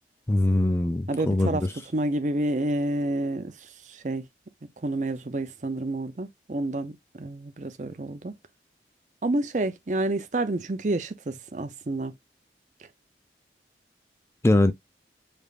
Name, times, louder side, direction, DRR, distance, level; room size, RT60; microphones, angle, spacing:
voice 1, 0.3-1.6 14.4-14.7, left 1 dB, 15° left, 0.4 m, -22 dB
voice 2, 1.1-4.3 4.8-8.3 9.2-12.1 12.8-12.9, right 2 dB, 45° right, 0.6 m, -29 dB
5.0 x 3.3 x 2.4 m
head